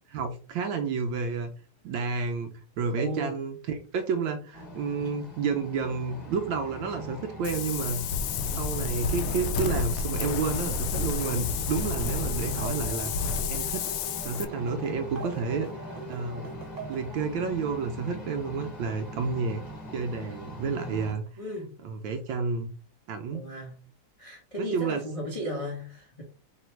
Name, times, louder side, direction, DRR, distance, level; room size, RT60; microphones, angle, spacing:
voice 1, 0.1-1.5 1.8-8.0 8.6-13.1 13.5-13.9 14.2-15.7 16.1-16.5 16.9-19.6 19.9-21.2 21.8-22.7 23.1-23.5 24.6-25.0, right 5 dB, 75° right, 5 dB, 1.1 m, -30 dB
voice 2, 2.9-3.3 21.4-21.8 23.3-23.8 24.2-26.2, equal, 40° left, -1 dB, 0.4 m, -35 dB
tractor-landfill-lifting, 4.5-21.1, equal, 25° left, 0.9 m, -42 dB
Wind, 7.4-14.5, left 5 dB, 80° left, 1.4 m, -30 dB
sound 1, 11.9-17.1, right 1 dB, 35° right, 1.5 m, -42 dB
3.9 x 2.7 x 4.4 m, 0.40 s
omnidirectional pair, 2.4 m